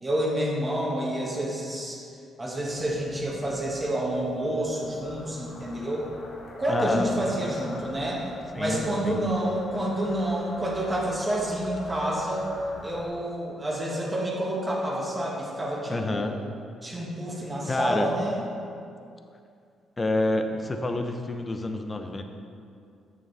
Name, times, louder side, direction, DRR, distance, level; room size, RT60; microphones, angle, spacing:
voice 1, 0.0-2.0 2.4-6.1 6.6-8.2 8.5-12.5 12.8-16.3 16.8-18.4, right 1 dB, 20° right, -4 dB, 1.5 m, -28 dB
sound 1, 2.7-13.1, left 2 dB, 70° left, 1.3 m, -46 dB
voice 2, 6.7-7.1 8.5-9.3 15.9-16.4 17.6-18.1 20.0-22.2, left 2 dB, 25° left, 6 dB, 0.6 m, -28 dB
8.5 x 6.7 x 3.4 m, 2.4 s
cardioid pair, 90°, 0 cm